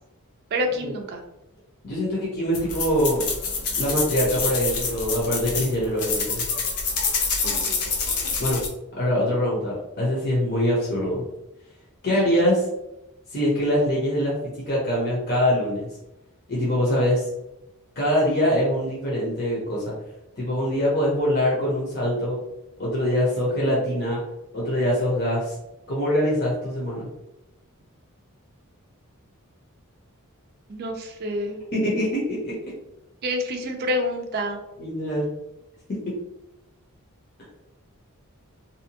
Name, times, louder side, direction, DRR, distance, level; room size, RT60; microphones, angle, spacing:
voice 1, 0.5-1.2 7.4-8.0 30.7-31.6 33.2-34.6, equal, 45° right, 3 dB, 0.4 m, -28 dB
voice 2, 1.8-3.2 3.8-6.4 8.4-8.6 9.0-11.2 12.0-12.6 13.3-14.4 14.7-15.9 16.5-17.2 18.0-19.9 20.4-22.4 22.8-24.2 24.5-25.5 25.9-27.1 31.7-32.5 34.8-35.3, equal, 45° left, -5 dB, 0.8 m, -23 dB
sound 1, 2.5-8.7, left 4 dB, 85° left, 0.6 m, -27 dB
2.7 x 2.2 x 2.8 m, 0.89 s
head